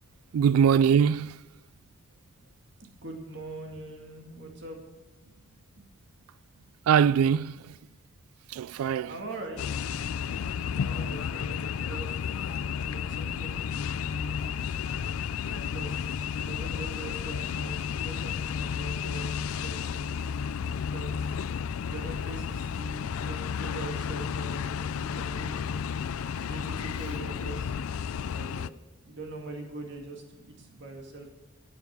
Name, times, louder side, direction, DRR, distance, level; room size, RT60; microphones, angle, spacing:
voice 1, 0.3-1.4 6.9-7.8 8.5-9.1, right 7 dB, 85° right, 0.3 m, -22 dB
voice 2, 2.8-4.8 5.8-5.9 9.1-9.7 10.7-12.2 12.5-14.6 15.5-20.2 20.8-21.4 21.8-26.0 26.2-27.8 28.3-28.8 29.1-31.3, right 2 dB, 60° right, 2.2 m, -43 dB
sound 1, 9.6-28.7, left 7 dB, 75° left, 0.4 m, -32 dB
10.5 x 9.4 x 6.0 m
head